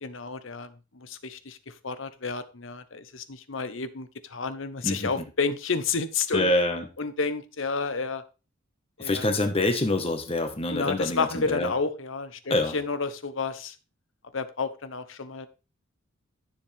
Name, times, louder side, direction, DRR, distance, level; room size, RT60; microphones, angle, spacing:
voice 1, 0.0-6.5 7.0-8.2 9.0-9.2 10.7-13.7 14.3-15.5, left 4 dB, 65° left, 1.0 m, -31 dB
voice 2, 4.8-5.2 6.3-6.9 9.0-11.7 12.5-12.8, left 2 dB, 30° left, 1.6 m, -26 dB
13.0 x 7.3 x 3.6 m
head